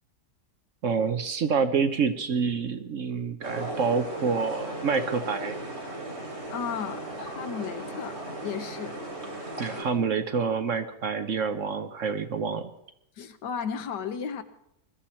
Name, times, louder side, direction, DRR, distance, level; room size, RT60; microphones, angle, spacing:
voice 1, 0.8-5.6 9.6-12.7, right 5 dB, 55° right, 9 dB, 1.0 m, -27 dB
sound 1, 3.4-9.8, right 1 dB, 40° right, 3.2 m, -36 dB
voice 2, 6.5-8.9 13.2-14.4, left 7 dB, 85° left, 10 dB, 1.6 m, -34 dB
21.5 x 13.0 x 4.4 m, 0.80 s
omnidirectional pair, 1.8 m